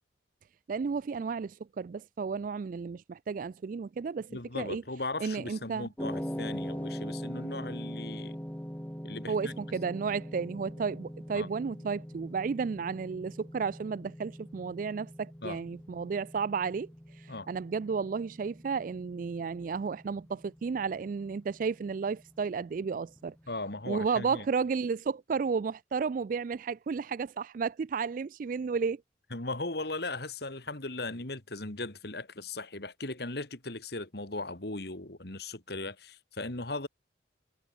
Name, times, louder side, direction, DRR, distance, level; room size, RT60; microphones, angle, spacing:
voice 1, 0.7-4.3 4.5-4.8 5.2-5.9 9.3-23.3 23.9-29.0, right 5 dB, 45° right, 0.3 m, -33 dB
voice 2, 4.3-8.4 9.0-9.5 11.3-11.5 15.4-15.6 17.3-17.5 23.5-24.5 29.3-36.9, left 2 dB, 60° left, 2.6 m, -38 dB
sound 1, 6.0-24.2, equal, 10° left, 1.7 m, -42 dB
head